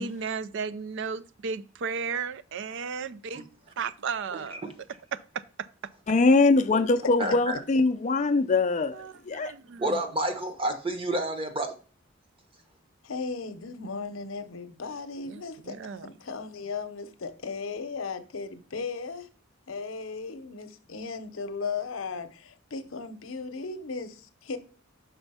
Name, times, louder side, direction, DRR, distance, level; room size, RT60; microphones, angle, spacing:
voice 1, 0.0-3.5 3.8-4.6 5.1-5.7 8.9-10.0 15.3-16.1, right 5 dB, 60° right, 0.4 m, -34 dB
voice 2, 4.3-4.7 7.2-7.6 9.8-11.7, right 1 dB, 25° right, 1.0 m, -30 dB
voice 3, 6.1-8.9 9.3-9.5, left 3 dB, 35° left, 0.4 m, -22 dB
voice 4, 13.0-19.3 19.7-24.6, left 4 dB, 75° left, 0.8 m, -36 dB
6.0 x 4.4 x 5.5 m
head